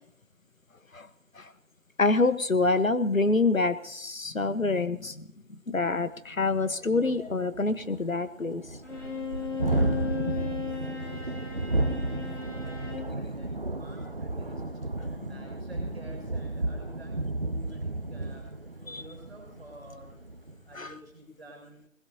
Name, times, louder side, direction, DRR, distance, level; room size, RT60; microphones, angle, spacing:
voice 1, 2.0-8.8 15.2-15.4 18.9-19.0 20.7-20.9, left 3 dB, 85° left, 12 dB, 1.3 m, -27 dB
Thunderstorm, 6.1-6.2 6.6-6.7 7.0-20.6, right 2 dB, 45° right, 1.0 m, -33 dB
Bowed string instrument, 8.8-13.2, left 6 dB, 65° left, 7.6 m, -36 dB
voice 2, 9.7-14.6 15.0-20.1 20.6-21.9, right 1 dB, ahead, -16 dB, 4.6 m, -50 dB
20.5 x 20.0 x 2.9 m, 0.71 s
figure-of-eight pair, 175°, 40 cm